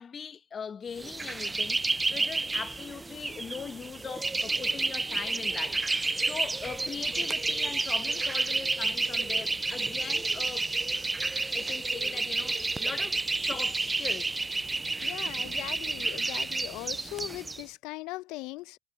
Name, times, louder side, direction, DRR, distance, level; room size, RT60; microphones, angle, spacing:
voice 1, 0.0-10.7 11.5-14.4, left 6 dB, 40° left, 1.2 m, -41 dB
sound 1, 1.0-17.6, right 3 dB, 20° right, 0.4 m, -30 dB
voice 2, 15.0-18.8, left 21 dB, 70° left, 0.6 m, -40 dB
hypercardioid pair, 65°, 0 cm